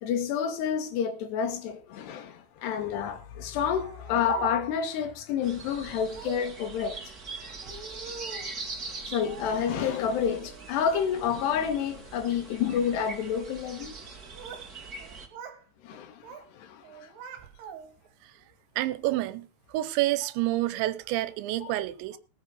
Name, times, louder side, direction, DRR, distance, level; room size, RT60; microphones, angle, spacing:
voice 1, 0.0-7.0 9.1-13.9 15.8-17.1 21.6-21.7, left 7 dB, 75° left, 3.4 m, -29 dB
Speech, 3.8-4.9 6.1-6.5 7.5-8.6 9.3-10.1 10.4-11.1 11.5-11.9 12.6-12.9 14.0-14.7 15.0-15.6 15.9-16.5 16.8-18.1, right 6 dB, 70° right, 3.6 m, -42 dB
sound 1, 5.4-15.3, right 3 dB, 30° right, 1.8 m, -42 dB
voice 2, 18.8-19.5 19.7-22.2, right 16 dB, 85° right, 3.2 m, -28 dB
19.0 x 7.4 x 5.4 m
omnidirectional pair, 5.1 m